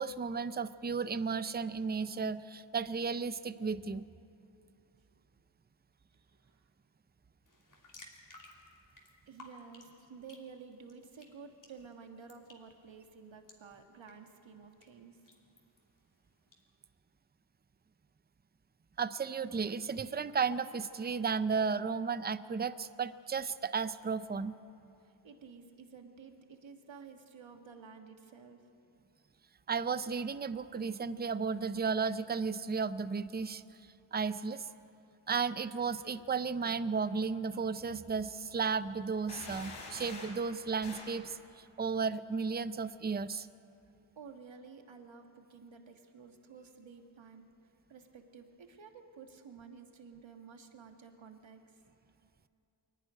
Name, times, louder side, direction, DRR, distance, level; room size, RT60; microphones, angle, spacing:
voice 1, 0.0-4.1 19.0-24.6 29.7-33.6 34.1-34.6 35.3-43.5, right 5 dB, 20° right, 14 dB, 0.5 m, -34 dB
voice 2, 6.1-6.7 9.3-15.2 25.0-28.6 44.1-47.5 47.9-52.0, right 5 dB, 65° right, 5 dB, 1.7 m, -52 dB
sound 1, 7.5-16.6, left 2 dB, 40° left, 3.0 m, -59 dB
sound 2, 39.3-40.4 40.8-41.2, left 3 dB, 85° left, 3.6 m, -46 dB
23.5 x 11.5 x 9.9 m, 2.7 s
wide cardioid pair, 95°, 50 cm